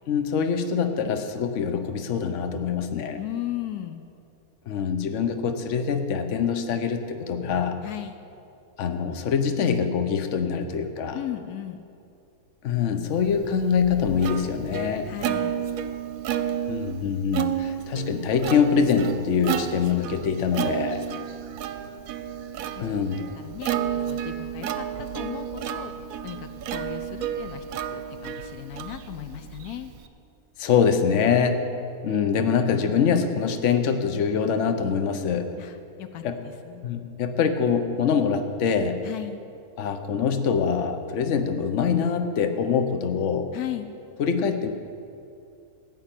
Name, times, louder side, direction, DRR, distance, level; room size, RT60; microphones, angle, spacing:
voice 1, 0.1-3.2 4.7-7.8 8.8-11.2 12.6-15.1 16.7-21.0 22.8-23.3 30.6-31.7 32.0-35.5 36.2-36.4 36.8-39.0 39.8-43.5 44.2-44.7, left 6 dB, 55° left, 8 dB, 1.1 m, -24 dB
voice 2, 3.1-4.0 7.8-8.2 11.1-11.8 15.0-15.6 22.7-22.9 23.3-25.9 26.2-27.6 27.9-29.9 35.6-36.8 39.0-39.4 43.5-43.9, left 12 dB, 80° left, 9 dB, 1.1 m, -36 dB
Plucked string instrument, 13.3-30.1, right 9 dB, 70° right, 1.0 m, -31 dB
14.5 x 5.9 x 9.0 m, 2.6 s
omnidirectional pair, 1.6 m